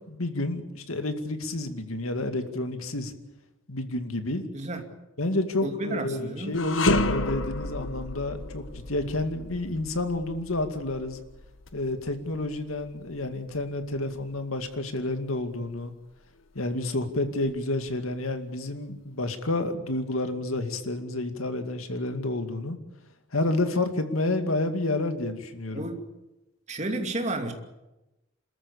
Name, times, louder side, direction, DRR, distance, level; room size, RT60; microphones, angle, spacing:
voice 1, 0.1-3.1 3.7-4.4 5.2-11.2 11.7-15.9 16.5-22.8 23.3-25.9, left 2 dB, 85° left, 7 dB, 2.3 m, -29 dB
voice 2, 4.5-4.8 5.6-6.6 25.7-26.0 26.7-27.5, right 2 dB, 35° right, 4 dB, 2.7 m, -31 dB
sound 1, 6.5-15.8 16.2-16.4 17.2-18.1, left 2 dB, 65° left, 1.3 m, -32 dB
27.0 x 14.0 x 8.5 m, 0.99 s
head